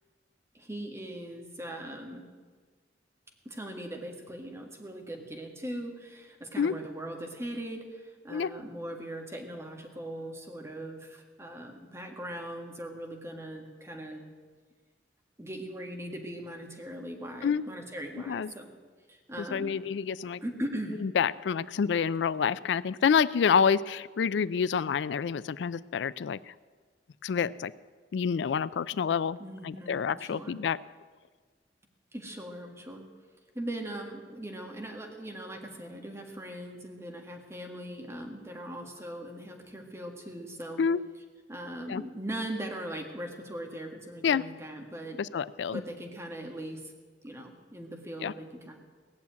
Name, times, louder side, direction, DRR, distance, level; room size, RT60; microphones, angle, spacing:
voice 1, 0.5-2.2 3.5-14.2 15.4-18.8 19.1-19.8 20.4-21.0 29.4-30.6 32.1-33.1 33.5-40.8 41.5-45.2 45.7-46.9 47.2-48.7, right 1 dB, 15° right, 2 dB, 1.7 m, -40 dB
voice 2, 19.5-20.4 21.0-26.5 27.2-27.7 28.1-29.4 29.6-30.8 40.8-41.0 41.9-42.0 44.2-44.4 45.2-45.8 48.2-48.3, left 6 dB, 85° left, 18 dB, 0.4 m, -28 dB
17.5 x 7.2 x 9.4 m, 1.5 s
head